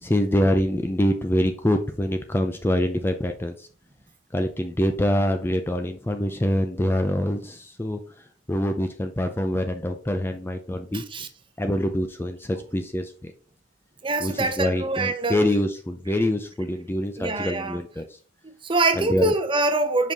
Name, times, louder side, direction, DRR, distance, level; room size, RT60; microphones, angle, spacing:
voice 1, 0.0-3.7 4.3-8.0 8.5-11.0 11.6-13.3 14.2-18.2 19.0-19.3, left 1 dB, 10° left, 0.4 m, -25 dB
voice 2, 10.9-11.3 14.0-15.4 16.1-16.2 17.2-17.8 18.4-20.1, right 2 dB, 25° right, 0.7 m, -24 dB
5.4 x 5.1 x 3.9 m
head